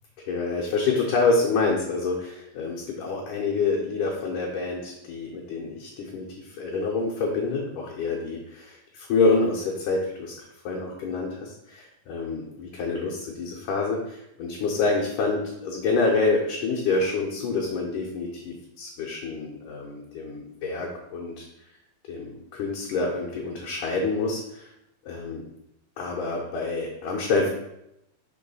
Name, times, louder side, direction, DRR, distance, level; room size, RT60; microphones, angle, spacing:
voice 1, 0.2-21.4 22.1-24.7 25.1-25.5 26.0-27.5, left 3 dB, 75° left, -2 dB, 1.9 m, -27 dB
6.1 x 3.1 x 5.3 m, 0.82 s
omnidirectional pair, 4.4 m